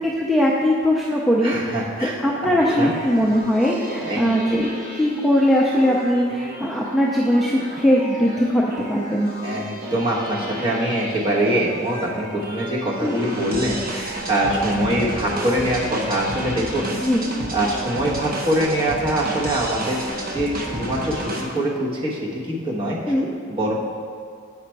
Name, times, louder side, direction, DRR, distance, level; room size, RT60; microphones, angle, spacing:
voice 1, 0.0-1.8 2.0-8.6 8.9-9.3 13.0-13.3 17.0-17.2 23.1-23.3, equal, ahead, -5 dB, 0.4 m, -20 dB
voice 2, 1.4-2.9 4.0-4.3 9.4-16.9 17.5-20.0 20.3-23.7, right 1 dB, 25° right, -5 dB, 1.2 m, -24 dB
sound 1, 2.6-21.4, right 1 dB, 45° right, 0.9 m, -32 dB
7.4 x 5.0 x 4.5 m, 2.2 s
head